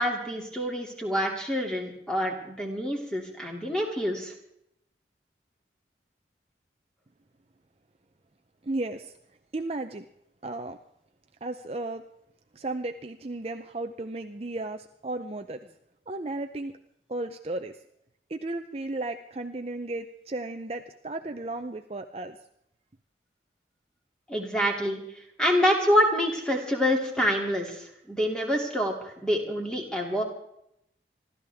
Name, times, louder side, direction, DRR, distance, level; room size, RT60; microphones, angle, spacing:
voice 1, 0.0-4.3 24.3-25.0 25.4-30.2, equal, 5° left, 0 dB, 2.6 m, -26 dB
voice 2, 8.6-9.1 9.5-10.1 10.4-10.8 11.4-12.0 12.5-15.7 16.1-16.7 17.1-17.8 18.3-22.4, right 2 dB, 35° right, 6 dB, 0.6 m, -34 dB
27.5 x 13.0 x 3.5 m, 0.76 s
head